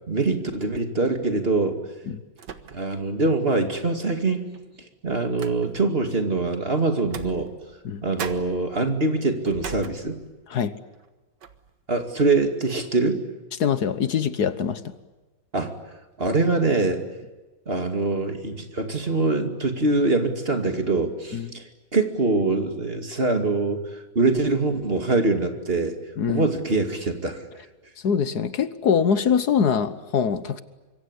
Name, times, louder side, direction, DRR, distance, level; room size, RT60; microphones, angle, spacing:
voice 1, 0.1-1.8 2.7-4.5 5.0-7.5 8.0-10.2 11.9-13.2 15.5-15.8 16.2-17.0 17.7-26.0 26.3-27.4, right 3 dB, 35° right, 6 dB, 2.6 m, -24 dB
sound 1, 1.0-1.3 2.4-3.1 3.5-3.6 4.5-6.0 7.0-7.9 8.2-10.5 10.9-11.1 11.4-11.8, right 7 dB, 85° right, 2.0 m, -40 dB
voice 2, 13.6-14.8 21.3-21.5 26.2-26.5 28.0-30.6, left 7 dB, 65° left, 13 dB, 1.6 m, -23 dB
26.0 x 23.0 x 9.8 m, 1.2 s
omnidirectional pair, 1.8 m